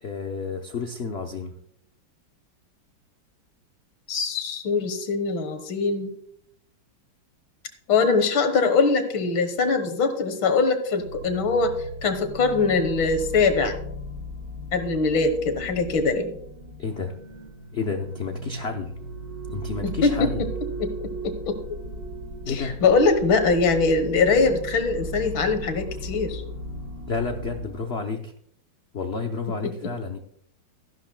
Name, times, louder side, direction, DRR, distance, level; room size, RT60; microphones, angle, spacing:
voice 1, 0.0-1.5 16.8-17.1 17.7-18.9 19.5-20.4 22.4-22.8 27.1-28.3 28.9-30.2, left 4 dB, 60° left, 4 dB, 0.7 m, -30 dB
voice 2, 4.1-6.1 7.9-11.8 12.0-13.8 14.7-16.4 19.8-20.5 20.8-21.6 22.5-26.4 29.6-29.9, left 4 dB, 80° left, 8 dB, 2.1 m, -22 dB
sound 1, 11.0-27.7, equal, 80° right, 5.5 m, -37 dB
14.0 x 12.0 x 2.2 m, 0.68 s
omnidirectional pair, 2.2 m